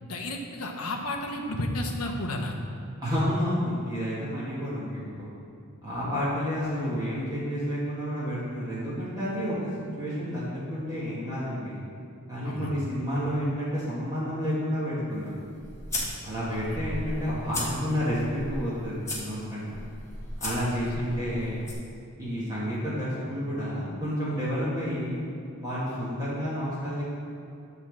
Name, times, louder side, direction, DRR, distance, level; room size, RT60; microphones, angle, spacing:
voice 1, 0.0-2.6 12.4-12.7 16.5-16.9 20.8-21.3, left 1 dB, 90° left, 2 dB, 1.2 m, -33 dB
voice 2, 3.0-5.3 5.8-9.7 10.0-11.8 12.3-15.3 16.2-19.7 20.4-21.6 22.2-25.2 25.6-27.1, equal, 15° right, -10 dB, 1.8 m, -30 dB
sound 1, 15.1-21.7, left 1 dB, 15° left, 1.9 m, -37 dB
12.0 x 4.1 x 7.5 m, 2.6 s
head